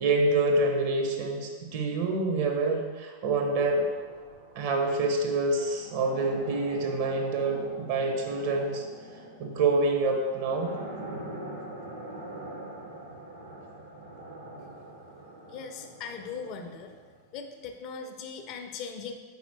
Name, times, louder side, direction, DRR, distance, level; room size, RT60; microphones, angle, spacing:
voice 1, 0.0-3.8 4.5-8.8 9.4-10.7, right 2 dB, 50° right, 2 dB, 0.7 m, -27 dB
sound 1, 3.6-17.4, right 1 dB, 75° right, 0.9 m, -44 dB
voice 2, 15.5-16.9 17.3-19.1, left 5 dB, 40° left, 5 dB, 0.4 m, -39 dB
4.2 x 4.1 x 2.9 m, 1.5 s
figure-of-eight pair, 90°, 0 cm